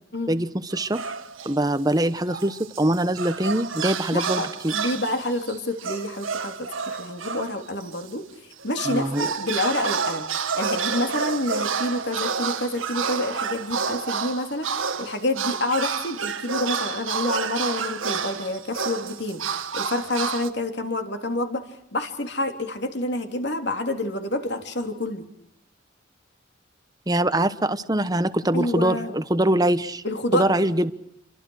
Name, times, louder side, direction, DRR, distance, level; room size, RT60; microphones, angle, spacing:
voice 1, 0.3-1.0 1.4-4.7 8.8-9.3 27.1-30.0 30.3-30.9, right 1 dB, 20° right, 12 dB, 1.1 m, -23 dB
sound 1, 0.7-1.6 2.0-8.1 8.5-20.5, right 6 dB, 85° right, 1.8 m, -30 dB
voice 2, 4.1-4.5 4.7-25.3 28.5-29.1 30.0-30.6, left 1 dB, 55° left, 6 dB, 3.4 m, -28 dB
30.0 x 23.5 x 6.5 m, 0.77 s
head